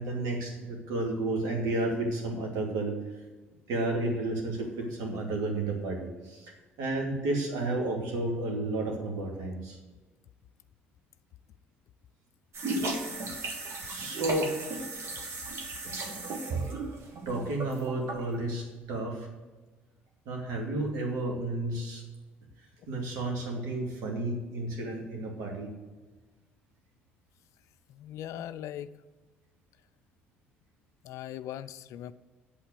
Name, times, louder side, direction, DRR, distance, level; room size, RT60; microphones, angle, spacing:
voice 1, 0.0-3.0 3.7-9.8 13.8-14.5 17.3-19.3 20.3-22.0 22.9-25.7, right 2 dB, 60° right, 0 dB, 2.6 m, -32 dB
sound 1, 12.5-18.4, right 3 dB, 45° right, 1.8 m, -35 dB
voice 2, 27.9-28.9 31.0-32.1, left 11 dB, 55° left, 13 dB, 0.5 m, -40 dB
8.5 x 8.4 x 6.7 m, 1.3 s
figure-of-eight pair, 50°, 6 cm